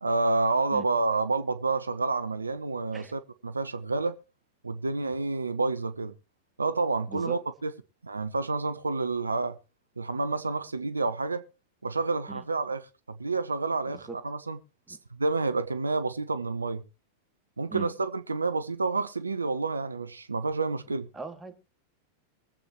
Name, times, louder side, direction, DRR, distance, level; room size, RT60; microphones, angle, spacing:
voice 1, 0.0-4.1 4.6-6.1 6.6-7.7 8.0-9.6 10.0-11.4 11.8-12.8 13.1-14.6 14.9-16.8 17.6-21.1, right 3 dB, 80° right, 0.7 m, -29 dB
voice 2, 7.1-7.4 12.3-12.4 13.9-14.2 14.9-15.0 17.7-17.9 21.1-21.5, right 5 dB, 10° right, 1.9 m, -39 dB
22.5 x 8.0 x 3.0 m
figure-of-eight pair, 90°, 0 cm